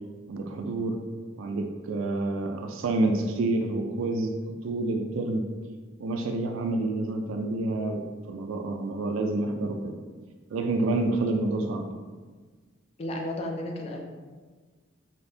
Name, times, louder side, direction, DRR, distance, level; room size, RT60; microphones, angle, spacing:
voice 1, 0.3-1.0 1.4-4.3 4.6-5.4 6.0-8.0 8.3-9.9 10.5-11.8, right 2 dB, 85° right, 4 dB, 0.3 m, -28 dB
voice 2, 13.0-14.0, left 1 dB, 30° left, 1 dB, 0.3 m, -33 dB
2.8 x 2.6 x 3.3 m, 1.4 s
head